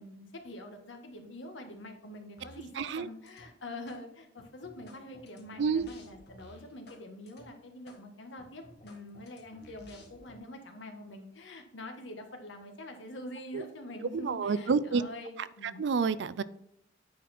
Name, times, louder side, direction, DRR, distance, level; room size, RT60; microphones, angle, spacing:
voice 1, 0.0-2.7 2.9-15.8, left 1 dB, 85° left, 4 dB, 1.4 m, -45 dB
sound 1, 2.4-3.0 3.3-4.0 4.4-7.0 7.3-7.5 7.9-8.0 8.4-10.4, left 2 dB, 60° left, 1.7 m, -54 dB
voice 2, 2.7-3.1 5.6-5.9 13.5-13.6 14.1-15.0 15.6-16.4, right 5 dB, 70° right, 17 dB, 0.4 m, -29 dB
9.3 x 4.2 x 4.2 m, 0.80 s
head